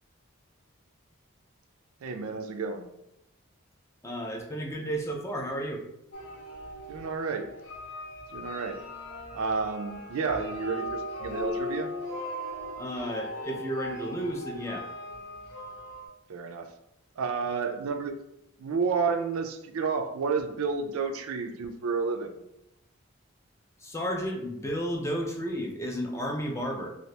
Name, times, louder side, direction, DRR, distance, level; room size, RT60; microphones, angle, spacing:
voice 1, 2.0-2.9 6.9-7.5 8.3-8.8 9.3-11.9 16.3-16.7 17.2-18.2 18.6-22.3, right 5 dB, 80° right, 7 dB, 0.4 m, -30 dB
voice 2, 4.0-5.8 12.8-14.9 23.8-26.9, equal, 15° left, 1 dB, 0.3 m, -32 dB
sound 1, 6.1-16.1, left 1 dB, 70° left, 0.8 m, -38 dB
2.8 x 2.5 x 3.1 m, 0.82 s
head